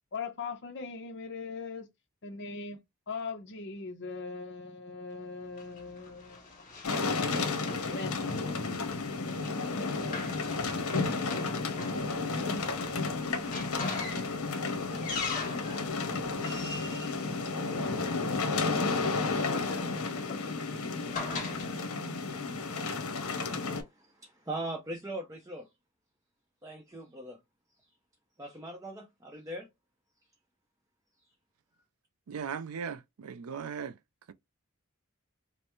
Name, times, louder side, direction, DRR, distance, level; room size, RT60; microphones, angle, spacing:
voice 1, 0.1-1.9 2.2-7.0 7.8-8.2 19.4-20.6, left 4 dB, 55° left, 0.8 m, -41 dB
Run, 5.6-18.2 19.2-21.7, left 4 dB, 35° left, 1.6 m, -42 dB
sound 1, 6.8-23.8, left 3 dB, 75° left, 1.0 m, -32 dB
voice 2, 23.5-25.7 26.6-27.4 28.4-29.7, right 1 dB, 15° right, 0.6 m, -40 dB
voice 3, 32.3-34.0 34.3-34.4, right 6 dB, 75° right, 0.4 m, -38 dB
5.3 x 2.1 x 3.1 m
head